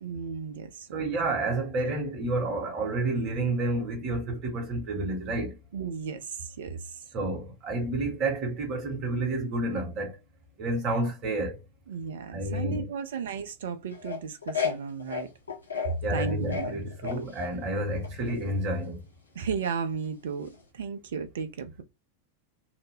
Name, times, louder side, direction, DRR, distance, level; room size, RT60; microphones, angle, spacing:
voice 1, 0.0-0.9 5.7-7.0 11.9-15.3 15.8-16.7 19.3-21.8, right 6 dB, 60° right, 0.6 m, -34 dB
voice 2, 0.9-5.5 7.1-10.2 10.6-11.6 12.3-12.9 16.0-19.0, right 2 dB, 35° right, 1.1 m, -30 dB
sound 1, 13.9-16.0 16.3-17.6 18.0-18.5 20.5-20.6, left 6 dB, 75° left, 0.7 m, -32 dB
2.8 x 2.1 x 3.3 m
figure-of-eight pair, 90°, 0 cm